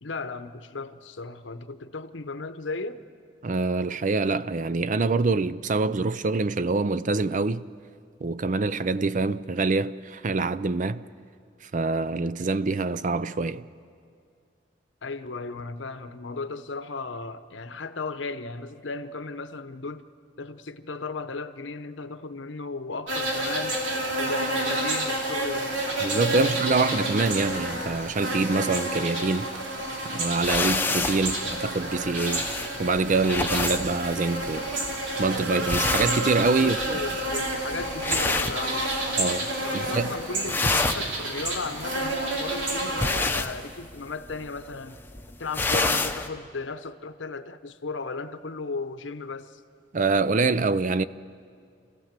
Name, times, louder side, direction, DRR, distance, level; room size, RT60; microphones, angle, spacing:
voice 1, 0.0-3.0 15.0-20.0 20.4-23.9 24.2-25.8 26.3-26.9 36.6-38.9 39.6-45.0 45.4-49.6, left 3 dB, 80° left, 0.9 m, -35 dB
voice 2, 3.4-7.7 8.2-11.0 11.7-13.6 26.0-29.5 30.0-32.5 32.8-34.7 35.2-37.0 39.2-40.1 49.9-51.0, right 3 dB, 40° right, 0.5 m, -25 dB
sound 1, 23.1-43.0, right 1 dB, 75° right, 3.3 m, -29 dB
sound 2, 30.4-39.3 39.6-40.1 40.3-46.3, left 3 dB, 10° left, 0.8 m, -29 dB
28.5 x 16.0 x 7.5 m
head